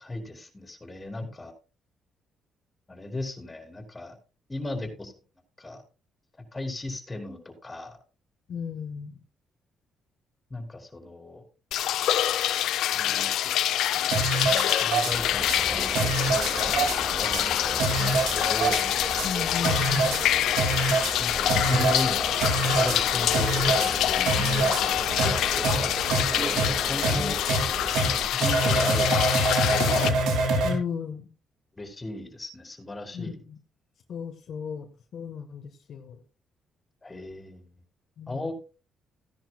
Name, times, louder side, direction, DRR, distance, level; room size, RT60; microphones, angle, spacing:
voice 1, 0.0-1.5 2.9-4.2 4.5-5.1 5.6-5.8 6.5-8.0 10.5-11.4 12.9-18.8 21.2-26.6 26.9-27.4 28.3-30.0 31.8-33.4 37.0-37.7 38.3-38.5, left 2 dB, 20° left, 3 dB, 4.3 m, -37 dB
voice 2, 8.5-9.2 19.2-20.2 27.1-27.3 30.6-31.3 33.1-33.6 34.1-36.2 38.2-38.5, left 7 dB, 65° left, 4 dB, 1.5 m, -35 dB
sound 1, 11.7-30.1, left 12 dB, 85° left, 0.6 m, -26 dB
sound 2, 14.1-15.1 15.5-15.6 15.9-17.0 17.3-17.4 17.8-18.8 19.2-19.3 19.6-20.2 20.6-21.1 21.5-22.1 22.4-23.0 23.3-23.9 24.3-24.8 25.2-25.3 25.6-25.8 26.1-26.2 26.6-26.7 27.0-27.2 27.5-27.6 27.9-28.1 28.4-30.7, right 3 dB, 90° right, 2.9 m, -25 dB
sound 3, 15.1-28.3, right 3 dB, 40° right, 2.3 m, -36 dB
16.5 x 10.5 x 2.4 m, 0.33 s
cardioid pair, 90°, 0 cm